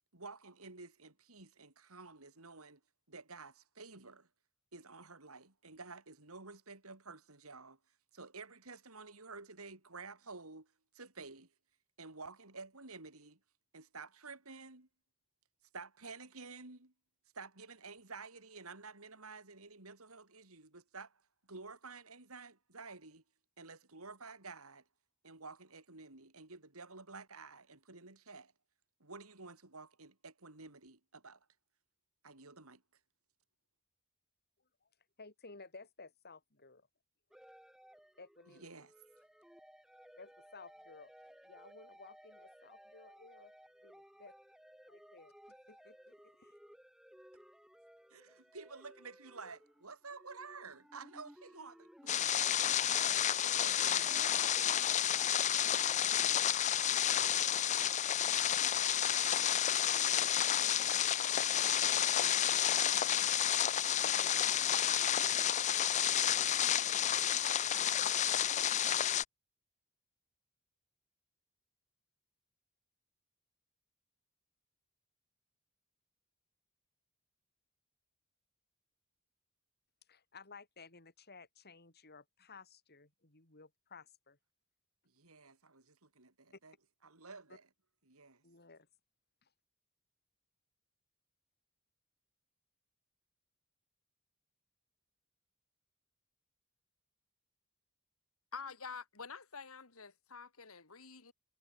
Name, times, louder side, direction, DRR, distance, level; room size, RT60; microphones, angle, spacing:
voice 1, 0.1-2.8 3.1-4.3 4.7-7.8 8.1-11.5 12.0-13.4 13.7-14.9 15.7-16.9 17.3-21.2 21.5-23.2 23.6-24.8 25.2-28.5 29.0-31.4 32.2-32.8 38.5-38.9 48.1-52.5 53.6-54.5 85.1-86.7 87.0-87.7 88.1-88.4, right 4 dB, 85° right, 4.1 m, -51 dB
voice 2, 35.2-36.9 38.2-38.9 40.2-43.5 43.8-44.3 44.9-46.6 80.1-84.4 86.5-86.6 88.4-88.9 89.4-89.5, left 4 dB, 50° left, 5.5 m, -56 dB
sound 1, 37.3-54.6, equal, ahead, 3.3 m, -59 dB
sound 2, 52.1-69.2, left 10 dB, 35° left, 0.5 m, -31 dB
voice 3, 98.5-101.3, left 5 dB, 75° left, 2.5 m, -48 dB
head